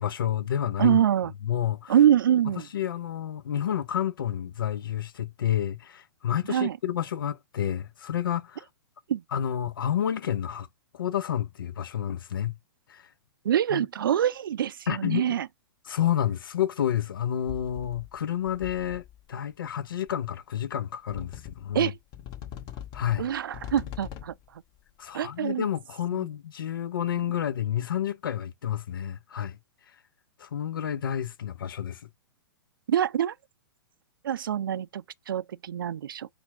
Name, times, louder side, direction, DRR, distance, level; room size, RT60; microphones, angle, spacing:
voice 1, 0.0-1.0 1.4-1.9 2.7-8.6 9.3-10.7 10.9-12.6 12.9-13.1 13.7-13.9 14.9-15.4 15.9-21.9 22.9-23.3 25.0-29.6 30.4-32.1, left 10 dB, 65° left, 0.7 m, -30 dB
voice 2, 0.8-1.3 1.9-2.7 6.5-6.8 9.1-9.2 13.4-15.5 21.7-22.0 23.2-24.3 25.1-25.7 26.1-26.3 32.9-33.3 34.2-36.3, right 10 dB, 65° right, 0.4 m, -25 dB
sound 1, 17.4-18.2 18.5-19.2 20.1-20.2 21.1-21.8 22.1-24.5, left 10 dB, 35° left, 1.5 m, -42 dB
4.4 x 2.3 x 4.1 m
figure-of-eight pair, 110°, 12 cm